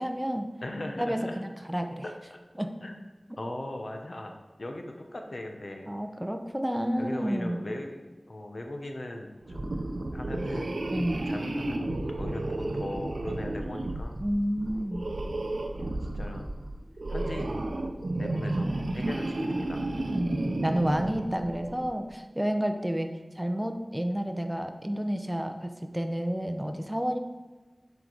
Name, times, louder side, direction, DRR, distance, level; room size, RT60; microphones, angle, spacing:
voice 1, 0.0-0.5 1.0-2.0 2.6-2.7 5.9-7.6 10.9-11.2 14.2-15.1 20.1-23.1 23.4-27.2, equal, 10° right, 6 dB, 0.7 m, -30 dB
voice 2, 0.6-1.4 2.0-2.4 2.8-3.0 3.4-5.9 7.0-8.0 8.3-9.7 10.1-10.7 11.2-14.2 15.8-16.5 17.1-17.7 18.2-19.8, left 1 dB, 60° left, 3 dB, 1.0 m, -39 dB
sound 1, 9.5-21.9, right 2 dB, 80° right, 0.6 m, -32 dB
7.7 x 5.0 x 3.9 m, 1.3 s
wide cardioid pair, 65°, 0 cm